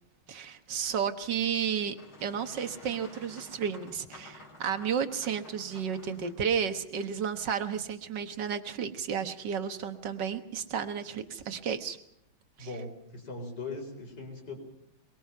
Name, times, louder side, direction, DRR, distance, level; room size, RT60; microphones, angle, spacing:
voice 1, 0.3-2.0 2.2-12.0 12.6-12.7, right 7 dB, 55° right, 9 dB, 1.8 m, -32 dB
Boat Water vehicle, 1.3-6.3, left 2 dB, 70° left, 5.4 m, -52 dB
voice 2, 12.6-14.6, left 3 dB, 50° left, 4 dB, 5.1 m, -40 dB
23.0 x 23.0 x 5.6 m, 0.78 s
omnidirectional pair, 2.4 m